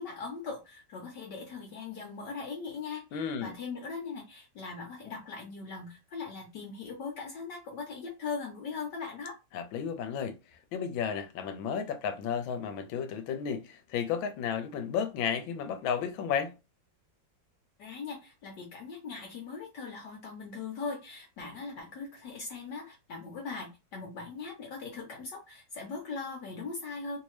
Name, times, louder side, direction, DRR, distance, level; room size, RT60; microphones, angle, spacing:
voice 1, 0.0-9.4 17.8-27.2, left 4 dB, 65° left, 1.3 m, -40 dB
voice 2, 3.1-3.5 9.5-10.3 10.7-16.5, left 7 dB, 85° left, 1.4 m, -33 dB
3.1 x 2.7 x 3.1 m
omnidirectional pair, 2.1 m